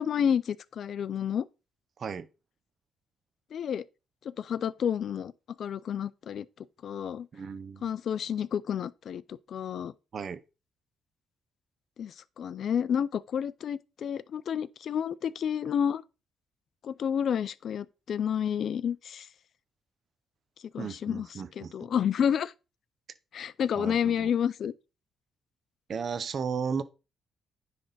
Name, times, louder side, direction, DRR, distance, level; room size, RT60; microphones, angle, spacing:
voice 1, 0.0-1.5 3.5-3.8 4.2-5.3 5.6-7.3 7.8-9.9 12.0-16.0 16.8-19.3 20.7-21.3 21.6-22.5 23.3-24.7, left 8 dB, 60° left, 0.4 m, -30 dB
voice 2, 7.3-7.9 10.1-10.4 20.8-21.7 23.8-24.3 25.9-26.8, right 6 dB, 50° right, 0.6 m, -34 dB
9.9 x 3.5 x 4.0 m
cardioid pair, 90°, 0 cm